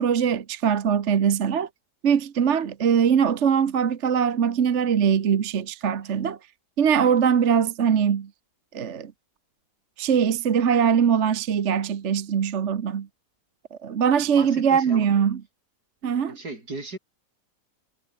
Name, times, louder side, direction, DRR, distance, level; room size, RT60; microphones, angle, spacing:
voice 1, 0.0-1.7 2.0-6.4 6.8-8.3 8.7-9.1 10.0-13.1 13.7-15.4 16.0-16.4, right 7 dB, 50° right, 1.3 m, -22 dB
voice 2, 14.4-15.2 16.3-17.0, right 2 dB, 80° right, 6.1 m, -37 dB
omnidirectional pair, 1.7 m